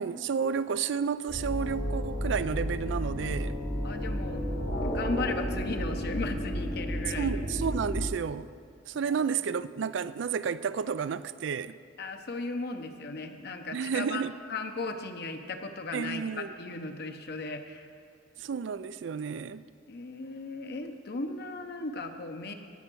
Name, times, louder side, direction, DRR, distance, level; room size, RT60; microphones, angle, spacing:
voice 1, 0.0-3.6 7.2-8.5 8.9-11.8 13.7-14.3 15.9-16.5 18.4-19.6, right 6 dB, 70° right, 0.4 m, -31 dB
sound 1, 1.3-8.1, equal, 75° left, 2.7 m, -32 dB
voice 2, 3.8-4.4 4.8-7.4 8.9-9.2 12.0-14.2 14.5-17.9 19.9-22.5, left 3 dB, 55° left, 0.8 m, -36 dB
16.5 x 5.6 x 6.2 m
head